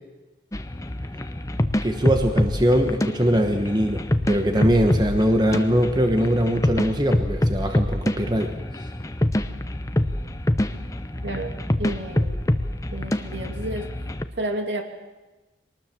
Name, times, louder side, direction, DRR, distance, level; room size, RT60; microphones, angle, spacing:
sound 1, 0.5-14.2, left 1 dB, 20° left, 0.8 m, -26 dB
voice 1, 1.8-8.5, equal, 25° right, 5 dB, 1.2 m, -21 dB
voice 2, 11.2-12.4 12.9-13.9 14.4-14.8, right 1 dB, 85° right, 4 dB, 2.5 m, -31 dB
23.0 x 19.5 x 7.4 m, 1.1 s
head